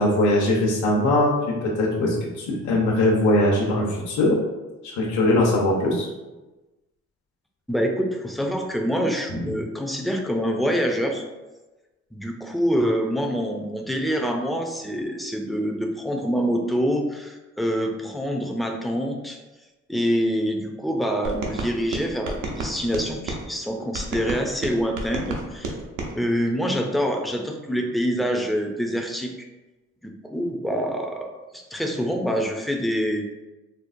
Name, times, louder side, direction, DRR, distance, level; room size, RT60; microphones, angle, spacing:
voice 1, 0.0-4.4 4.8-6.1 9.4-9.5, left 1 dB, 70° left, -3 dB, 0.9 m, -21 dB
voice 2, 7.7-11.2 12.1-19.4 19.9-25.7 26.2-29.3 30.0-33.2, equal, ahead, 3 dB, 0.4 m, -26 dB
sound 1, 21.2-23.4 23.9-26.1, right 2 dB, 85° right, 0.7 m, -31 dB
4.4 x 2.0 x 2.5 m, 1.1 s
cardioid pair, 90°, 30 cm